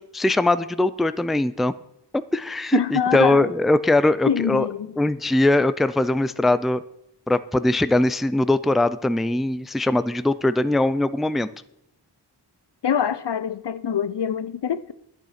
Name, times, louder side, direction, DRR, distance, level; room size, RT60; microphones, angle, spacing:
voice 1, 0.1-1.7 2.3-4.7 5.0-6.8 7.3-11.5, left 2 dB, ahead, 0.4 m, -21 dB
voice 2, 2.7-3.4 4.3-4.9 12.8-14.9, left 8 dB, 70° left, 0.6 m, -24 dB
9.9 x 9.2 x 5.8 m
wide cardioid pair, 45°, 43 cm